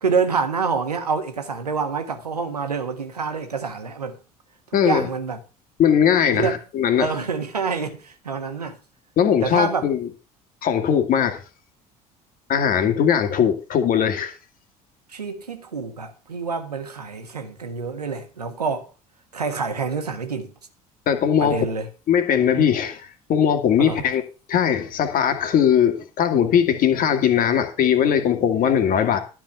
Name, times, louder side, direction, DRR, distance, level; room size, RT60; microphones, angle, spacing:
voice 1, 0.0-4.1 4.7-5.4 6.3-6.6 7.0-8.8 9.4-9.9 15.1-18.9 19.3-20.5 21.4-21.9 23.8-24.0, right 5 dB, 80° right, 1.4 m, -27 dB
voice 2, 4.7-5.1 5.8-7.1 9.2-10.1 10.6-11.4 12.5-14.3 21.1-21.6 22.1-24.2 24.5-29.2, left 8 dB, 45° left, 2.0 m, -20 dB
12.0 x 5.0 x 7.9 m
figure-of-eight pair, 60°, 20 cm